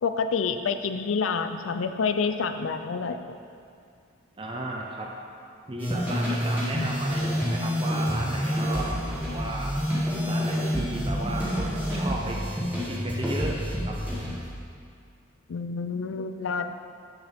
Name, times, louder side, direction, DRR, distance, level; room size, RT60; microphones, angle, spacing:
voice 1, 0.0-3.2 15.5-16.7, left 5 dB, 70° left, 8 dB, 0.4 m, -28 dB
voice 2, 4.4-5.1 5.7-12.4 12.8-13.6 13.8-13.9, right 1 dB, 25° right, -1 dB, 0.6 m, -34 dB
sound 1, 5.8-14.5, equal, 10° right, 1.9 m, -28 dB
8.0 x 7.1 x 3.5 m, 2.3 s
head